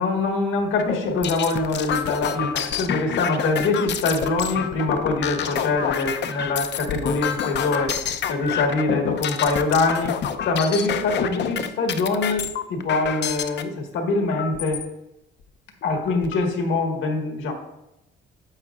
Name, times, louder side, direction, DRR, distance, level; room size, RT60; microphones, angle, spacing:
voice 1, 0.0-7.9 8.3-10.1 10.5-14.8 15.8-17.5, left 3 dB, 85° left, 3 dB, 1.6 m, -24 dB
sound 1, 0.8-13.6 14.3-14.8 15.4-15.5 15.8-16.4, left 8 dB, 65° left, 0.6 m, -28 dB
9.6 x 7.2 x 2.4 m, 0.88 s
cardioid pair, 90°, 20 cm